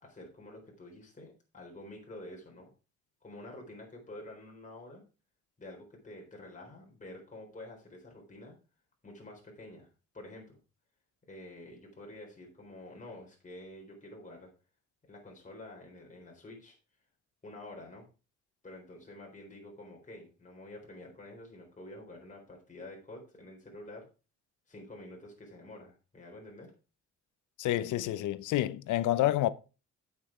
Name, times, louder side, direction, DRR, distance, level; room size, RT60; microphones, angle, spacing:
voice 1, 0.0-2.7 3.2-5.0 5.6-8.6 9.0-9.9 10.1-10.6 11.3-14.5 15.1-16.8 17.4-18.1 18.6-24.1 24.7-26.7, left 1 dB, 25° left, 4.0 m, -48 dB
voice 2, 27.6-29.5, left 14 dB, 80° left, 0.7 m, -28 dB
8.8 x 6.9 x 4.5 m
cardioid pair, 90°, 30 cm